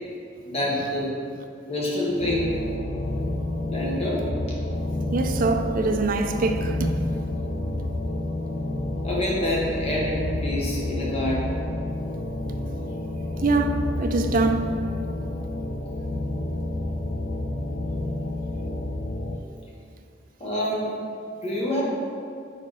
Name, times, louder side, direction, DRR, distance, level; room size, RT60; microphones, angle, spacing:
voice 1, 0.4-1.1 1.7-2.6 3.7-4.2 9.0-11.4 20.4-20.9 21.4-21.8, left 1 dB, 35° left, 1.3 m, -26 dB
sound 1, 2.2-19.4, left 1 dB, 55° left, 0.5 m, -29 dB
voice 2, 5.1-7.0 13.4-14.7, right 3 dB, 50° right, 0.4 m, -24 dB
4.9 x 4.2 x 4.8 m
head